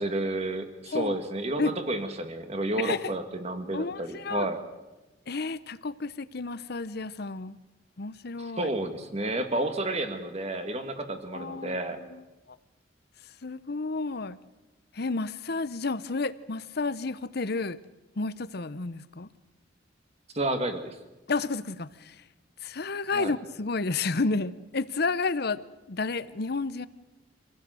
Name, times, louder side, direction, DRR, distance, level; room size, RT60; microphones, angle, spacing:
voice 1, 0.0-4.6 8.4-12.0 20.3-21.0 23.1-23.4, right 1 dB, 35° right, 2.1 m, -31 dB
voice 2, 3.7-4.5 5.3-7.6 8.0-8.7 11.3-11.8 13.4-14.4 15.0-17.8 18.2-19.3 21.3-22.1 22.6-25.6 25.9-26.9, left 3 dB, 60° left, 0.9 m, -31 dB
26.0 x 16.5 x 7.8 m
head